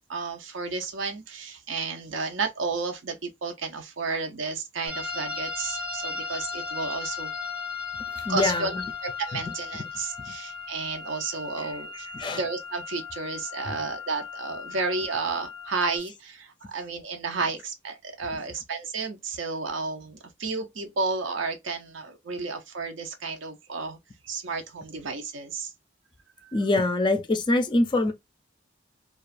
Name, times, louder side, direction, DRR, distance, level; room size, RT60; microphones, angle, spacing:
voice 1, 0.1-7.3 8.3-8.7 9.2-12.1 12.3-24.0 24.2-25.7 26.4-26.5, right 4 dB, 75° right, 0.6 m, -32 dB
sound 1, 4.9-16.0, left 5 dB, 5° right, 0.7 m, -36 dB
voice 2, 8.1-8.8 9.3-9.4 10.3-10.4 11.6-12.4 13.7-13.8 18.3-18.4 26.5-28.1, left 2 dB, 25° left, 0.3 m, -26 dB
2.4 x 2.3 x 2.4 m
head